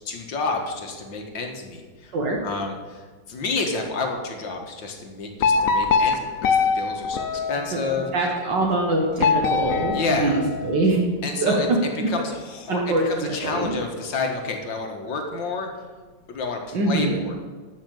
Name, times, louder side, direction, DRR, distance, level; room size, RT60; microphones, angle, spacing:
voice 1, 0.1-2.2 2.4-3.0 3.3-8.1 9.9-10.4 11.2-11.7 12.1-15.7 16.3-17.4, left 4 dB, 90° left, 3 dB, 2.3 m, -29 dB
sound 1, 5.4-8.1 9.2-10.9, left 5 dB, 60° left, 1.0 m, -23 dB
voice 2, 8.1-11.1 11.4-11.5 12.0-12.1 12.7-13.7 16.7-17.2, right 2 dB, 75° right, -1 dB, 2.0 m, -23 dB
12.5 x 6.1 x 7.8 m, 1.4 s
omnidirectional pair, 2.0 m